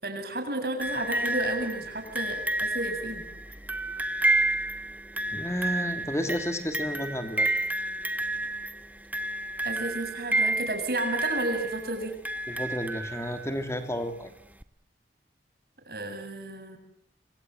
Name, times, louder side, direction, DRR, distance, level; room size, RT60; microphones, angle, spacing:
voice 1, 0.0-3.3 9.6-12.1 15.9-16.8, right 1 dB, 55° right, 4 dB, 7.3 m, -32 dB
sound 1, 0.8-13.6 14.6-14.7, right 2 dB, 10° right, 1.1 m, -30 dB
voice 2, 5.3-7.5 12.5-14.3, equal, 15° left, 7 dB, 3.1 m, -31 dB
26.0 x 25.5 x 7.9 m, 0.62 s
head